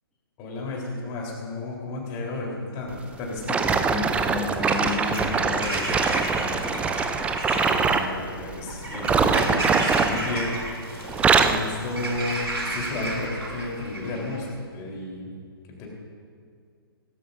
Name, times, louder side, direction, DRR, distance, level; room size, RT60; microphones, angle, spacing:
voice 1, 0.4-3.7 7.5-10.6 10.9-15.3 15.8-15.9, left 2 dB, 25° left, -2 dB, 3.8 m, -33 dB
sound 1, 3.5-8.1 8.9-10.7 11.0-11.7 12.3-12.5 13.1-13.2, right 5 dB, 10° right, 0.5 m, -23 dB
voice 2, 3.6-7.0, left 3 dB, 10° left, -5 dB, 1.6 m, -33 dB
Bird vocalization bird call bird song / Crow, 4.6-14.4, right 1 dB, 85° right, 3.0 m, -33 dB
18.5 x 17.5 x 2.6 m, 2.2 s
figure-of-eight pair, 125°, 13 cm